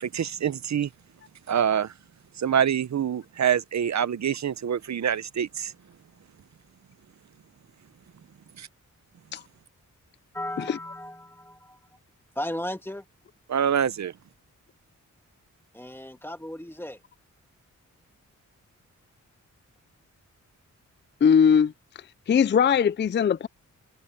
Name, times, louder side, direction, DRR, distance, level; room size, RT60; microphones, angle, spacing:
voice 1, 0.0-0.9 1.5-1.9 2.4-5.7 8.6-8.7 13.5-14.1, right 8 dB, 60° right, 0.8 m, -25 dB
voice 2, 10.3-11.8 12.4-13.0 15.7-17.0, left 1 dB, 5° left, 2.2 m, -35 dB
voice 3, 21.2-21.7 22.3-23.5, left 7 dB, 35° left, 0.4 m, -20 dB
wide cardioid pair, 100°, 31 cm